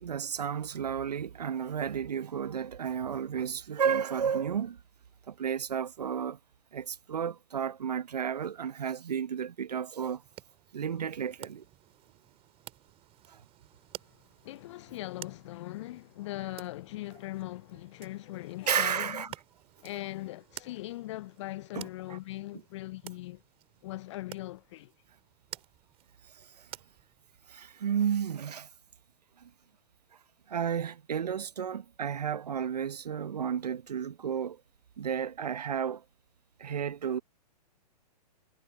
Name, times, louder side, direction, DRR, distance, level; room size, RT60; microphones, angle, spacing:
voice 1, 0.0-4.8 5.3-6.4 6.7-10.2 10.7-11.6 13.3-13.4 18.7-19.3 21.7-22.2 27.5-28.7 29.4-29.5 30.5-34.6 35.0-36.0 36.6-37.2, right 8 dB, 70° right, 1.1 m, -32 dB
sound 1, 10.2-27.6, right 14 dB, 25° right, 6.0 m, -52 dB
voice 2, 14.4-19.2 19.8-23.4 23.8-24.9, left 17 dB, 45° left, 0.7 m, -40 dB
figure-of-eight pair, 115°, 21 cm